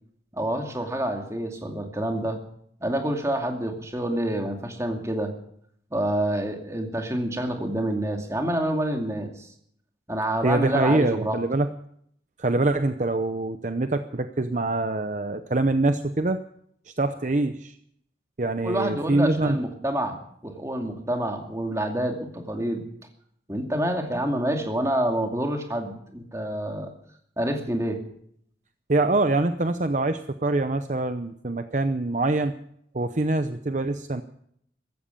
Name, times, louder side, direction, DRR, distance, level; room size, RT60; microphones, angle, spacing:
voice 1, 0.3-2.4 2.8-5.3 5.9-9.5 10.1-11.4 18.6-20.2 20.4-22.8 23.5-26.9 27.4-28.0, right 1 dB, 15° right, 3 dB, 2.4 m, -27 dB
voice 2, 10.4-11.7 12.4-16.4 16.9-17.8 18.4-19.6 28.9-32.6 32.9-34.2, right 2 dB, 45° right, 9 dB, 0.7 m, -24 dB
15.0 x 14.0 x 7.0 m, 0.67 s
head